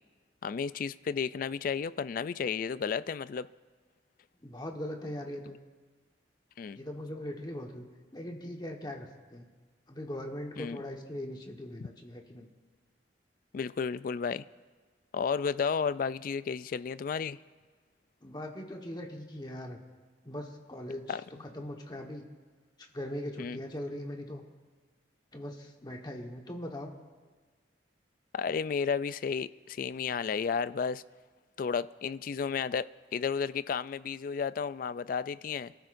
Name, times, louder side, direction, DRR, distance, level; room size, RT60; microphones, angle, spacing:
voice 1, 0.4-3.5 6.6-6.8 10.6-10.8 11.8-11.9 13.5-14.4 15.1-17.4 21.1-21.2 23.4-23.6 28.3-31.0 31.6-35.7, left 6 dB, 50° left, 0.3 m, -32 dB
voice 2, 4.4-5.6 6.7-7.8 8.1-9.5 9.9-12.5 18.2-19.8 20.2-22.2 22.9-24.4 25.3-26.9, left 1 dB, 25° left, 1.3 m, -40 dB
26.0 x 13.5 x 2.6 m
head